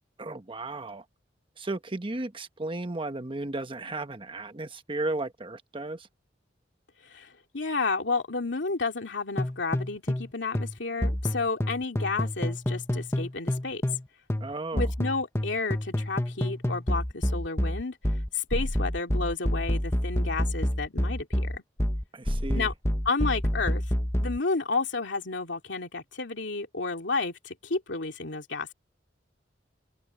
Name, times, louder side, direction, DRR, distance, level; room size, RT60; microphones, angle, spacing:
voice 1, 0.2-1.0 1.6-6.1 14.4-14.9 22.1-22.7, right 2 dB, 30° right, 1.1 m, -34 dB
voice 2, 7.0-13.8 14.7-21.6 22.5-22.7 23.0-23.8 24.2-28.7, left 3 dB, 85° left, 2.5 m, -31 dB
sound 1, 9.4-10.3 10.5-14.0 14.3-24.4, left 1 dB, 15° left, 0.9 m, -28 dB
head